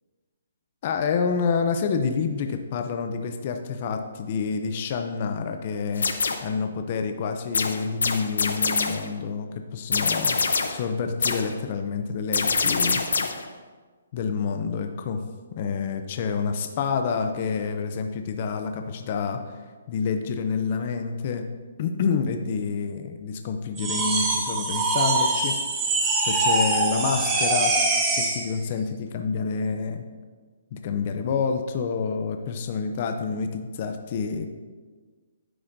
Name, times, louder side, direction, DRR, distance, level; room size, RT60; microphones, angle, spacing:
voice 1, 0.8-6.1 6.4-10.4 10.7-13.0 14.1-15.2 15.5-19.6 19.9-21.5 21.8-25.6 26.3-27.7 28.1-30.0 30.7-34.4, left 5 dB, 30° left, 6 dB, 0.5 m, -28 dB
sound 1, 5.9-6.6 7.5-9.1 9.9-10.9 11.2-11.6 12.3-13.5, left 4 dB, 90° left, 0.7 m, -25 dB
sound 2, 23.8-28.5, right 2 dB, 15° right, 0.8 m, -23 dB
9.7 x 7.8 x 2.6 m, 1.4 s
hypercardioid pair, 170°, 0 cm